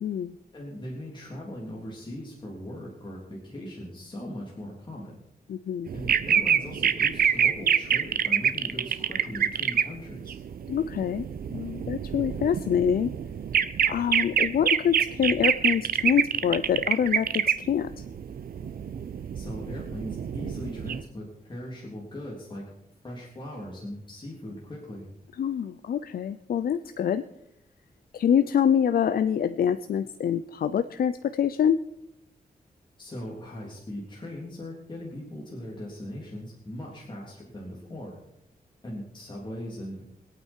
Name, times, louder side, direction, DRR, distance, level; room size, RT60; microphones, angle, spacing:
voice 1, 0.0-0.3 5.5-5.9 10.7-13.1 13.9-17.9 25.4-27.2 28.1-31.8, left 8 dB, 80° left, 12 dB, 0.5 m, -25 dB
voice 2, 0.5-5.2 5.9-10.4 19.3-22.6 23.0-25.1 33.0-38.2 38.8-40.0, left 1 dB, 30° left, -4 dB, 3.5 m, -39 dB
sound 1, 5.9-9.8 10.1-21.0, right 8 dB, 75° right, 0.7 m, -26 dB
25.0 x 9.0 x 4.6 m, 0.82 s
wide cardioid pair, 105°, 15 cm